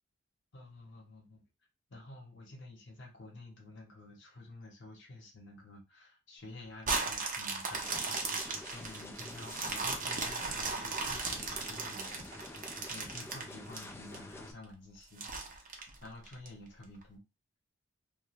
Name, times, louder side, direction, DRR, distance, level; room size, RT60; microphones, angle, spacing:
voice 1, 0.5-1.4 1.9-8.2 8.7-17.2, left 2 dB, 60° left, 0 dB, 0.9 m, -51 dB
sound 1, 6.8-14.2 14.6-14.7 15.2-16.5 17.0-17.1, right 4 dB, 40° right, 0.6 m, -36 dB
sound 2, 7.7-14.5, left 1 dB, 10° left, 0.4 m, -48 dB
2.5 x 2.2 x 3.0 m, 0.26 s
head